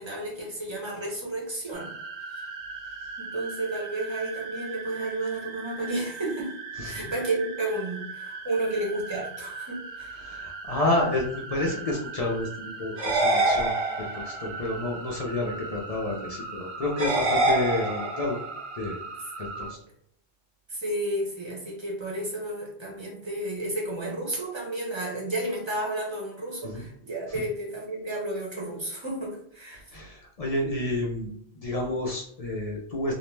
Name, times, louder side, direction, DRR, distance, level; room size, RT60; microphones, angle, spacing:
voice 1, 0.0-1.9 3.2-6.5 6.8-10.2 20.7-29.8, right 1 dB, 30° right, -3 dB, 0.7 m, -32 dB
sound 1, 1.7-19.7, right 4 dB, 85° right, 0.9 m, -39 dB
voice 2, 10.2-13.7 14.1-18.4 18.8-19.0 19.4-19.8 26.6-26.8 29.9-31.3 31.6-33.1, left 2 dB, 50° left, -1 dB, 0.4 m, -29 dB
sound 2, 13.0-14.4 17.0-18.4, right 2 dB, 65° right, 0.9 m, -25 dB
2.5 x 2.1 x 3.1 m, 0.68 s
omnidirectional pair, 1.1 m